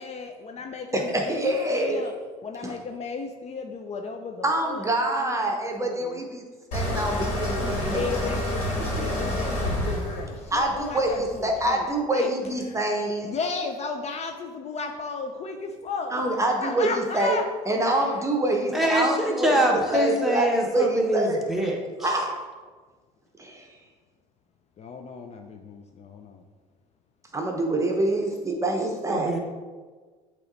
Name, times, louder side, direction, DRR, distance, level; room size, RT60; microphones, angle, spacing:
voice 1, 0.0-2.1 2.4-4.8 5.2-6.2 7.8-12.3 12.7-12.8 13.2-16.3 16.6-17.5 18.0-18.1 24.8-26.4, left 4 dB, 40° left, 5 dB, 0.5 m, -34 dB
voice 2, 0.9-2.0 2.6-2.7 4.4-6.4 6.7-8.0 10.5-13.3 16.1-17.4 17.7-20.5 20.7-21.4 22.0-22.4 23.4-23.7 27.3-29.4, right 1 dB, 20° right, 2 dB, 0.9 m, -26 dB
sound 1, 6.7-11.7, left 1 dB, 80° left, 1.8 m, -29 dB
voice 3, 18.7-22.1 29.1-29.4, right 1 dB, ahead, -1 dB, 1.3 m, -24 dB
7.8 x 3.0 x 4.0 m, 1.4 s
supercardioid pair, 75°, 17 cm